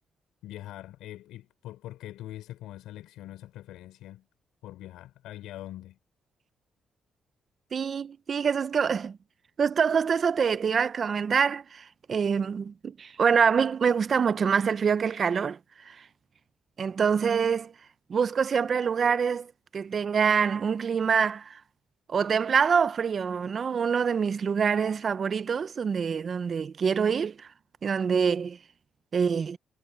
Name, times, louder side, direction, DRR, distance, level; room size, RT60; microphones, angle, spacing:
voice 1, 0.4-4.2 4.6-6.0, left 14 dB, 90° left, 4.2 m, -43 dB
voice 2, 7.7-9.2 9.6-15.6 15.9-16.0 16.8-17.7 18.1-21.6 22.1-27.5 27.8-28.6 29.1-29.6, right 6 dB, 45° right, 0.7 m, -25 dB
cardioid pair, 90°, 0 cm